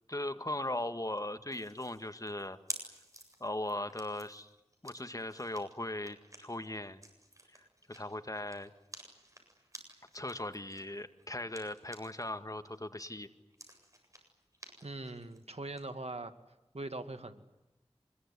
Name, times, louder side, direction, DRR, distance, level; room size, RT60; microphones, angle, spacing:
voice 1, 0.1-2.6 3.4-4.5 4.8-7.0 7.5-8.7 10.1-13.3, left 1 dB, 35° left, 9 dB, 1.8 m, -39 dB
sound 1, 1.5-12.3 12.6-15.8, right 1 dB, 30° right, 7.9 m, -51 dB
voice 2, 14.8-16.3 16.7-17.4, right 2 dB, 70° right, 8 dB, 2.3 m, -41 dB
25.5 x 22.5 x 9.8 m, 0.98 s
wide cardioid pair, 45°, 11 cm